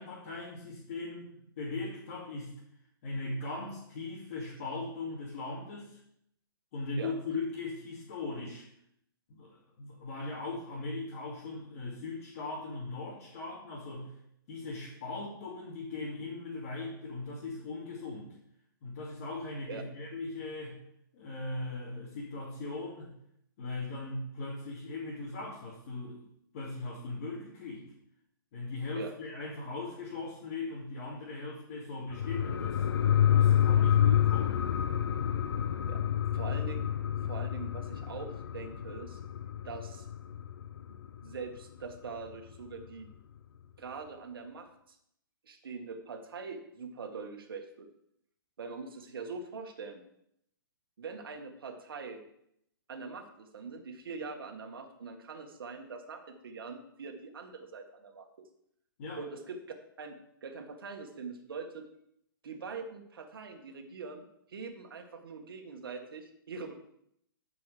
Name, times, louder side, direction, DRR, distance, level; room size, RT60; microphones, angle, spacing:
voice 1, 0.0-2.5 3.0-6.0 6.7-8.7 9.3-14.1 14.5-18.3 18.8-20.8 21.1-23.1 23.6-26.3 26.5-27.9 28.5-32.8 33.3-34.6 59.0-59.2, left 3 dB, 35° left, -8 dB, 2.7 m, -39 dB
sound 1, 32.1-41.2 41.6-41.7, left 10 dB, 80° left, 0.7 m, -28 dB
voice 2, 36.3-36.9 37.2-39.2 39.6-40.1 41.2-43.1 43.8-45.0 45.4-47.9 48.6-50.0 51.0-52.2 52.9-58.5 59.2-59.6 60.0-61.9 62.4-66.7, right 4 dB, 70° right, 4 dB, 2.0 m, -43 dB
13.5 x 5.7 x 5.1 m, 0.74 s
hypercardioid pair, 175°, 12 cm